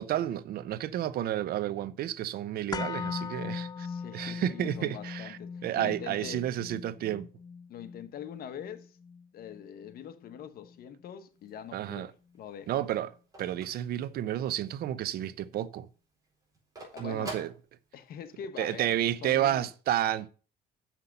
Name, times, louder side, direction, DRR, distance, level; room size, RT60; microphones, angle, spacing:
voice 1, 0.0-3.9 4.1-7.3 11.7-12.1 12.7-13.1 13.4-15.9 17.0-17.5 18.6-20.3, right 12 dB, 65° right, 0.6 m, -31 dB
sound 1, 2.7-10.8 11.1-11.2, left 5 dB, 25° left, 0.4 m, -40 dB
voice 2, 3.8-6.4 7.7-9.0 9.3-12.9 16.8-17.4 17.9-19.7, left 9 dB, 60° left, 1.1 m, -44 dB
Telephone, 11.3-14.7 15.1-15.2 15.5-18.3, right 3 dB, 20° right, 4.4 m, -46 dB
7.2 x 5.9 x 6.6 m
cardioid pair, 110°, 17 cm